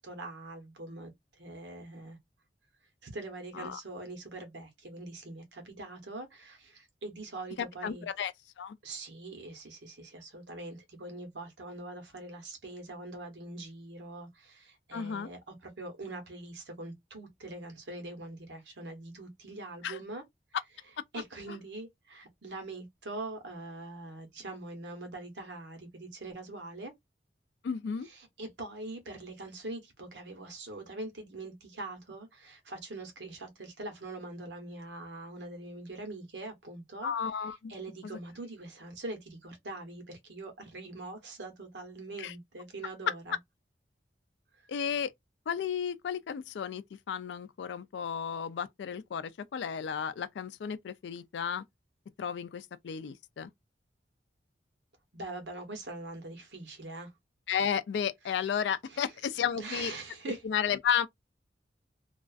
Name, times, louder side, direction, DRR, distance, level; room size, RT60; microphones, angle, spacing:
voice 1, 0.0-2.2 3.0-8.1 8.8-20.2 21.1-26.9 28.0-37.1 37.4-43.4 44.5-44.6 55.1-57.1 58.9-59.1 59.6-60.4, right 2 dB, 80° right, 0.9 m, -43 dB
voice 2, 7.6-8.3 8.6-8.8 14.9-15.3 19.8-20.0 27.6-28.1 37.0-37.7 42.2-42.3 43.1-43.2 44.7-45.1 45.5-51.6 52.2-53.5 57.5-59.9 60.4-61.1, left 7 dB, 75° left, 0.3 m, -33 dB
2.3 x 2.3 x 2.3 m
head